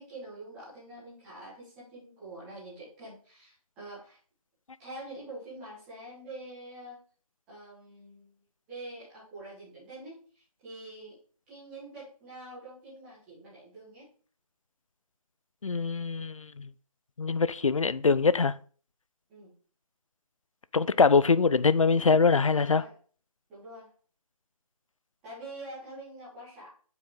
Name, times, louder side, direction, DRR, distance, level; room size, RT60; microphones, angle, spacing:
voice 1, 0.0-4.2 4.8-7.0 7.5-8.3 8.7-11.2 11.5-14.1 19.3-19.5 22.5-22.9 23.5-23.9 25.2-26.7, right 1 dB, 5° right, 1.3 m, -45 dB
voice 2, 15.6-16.7 17.2-18.6 20.7-22.8, left 4 dB, 60° left, 0.4 m, -23 dB
7.5 x 5.0 x 3.6 m
figure-of-eight pair, 175°, 19 cm